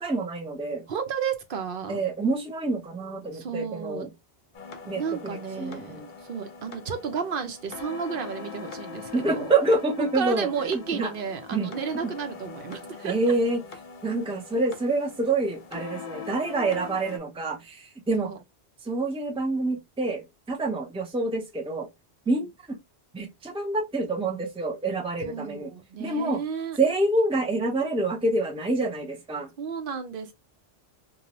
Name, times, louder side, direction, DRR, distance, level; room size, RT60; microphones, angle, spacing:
voice 1, 0.0-0.9 1.9-4.1 4.9-5.0 5.6-6.1 9.1-11.1 11.5-11.8 13.0-13.6 14.0-18.3 18.9-21.9 22.3-22.5 23.1-25.7 26.0-26.4 26.8-29.5, right 2 dB, 5° right, 0.6 m, -27 dB
voice 2, 0.9-2.0 3.3-4.1 4.9-9.5 10.1-13.2 18.2-18.4 22.3-22.4 25.2-26.8 29.6-30.3, right 6 dB, 60° right, 0.7 m, -32 dB
sound 1, 4.5-17.2, left 5 dB, 55° left, 0.7 m, -42 dB
2.7 x 2.3 x 2.9 m
omnidirectional pair, 1.1 m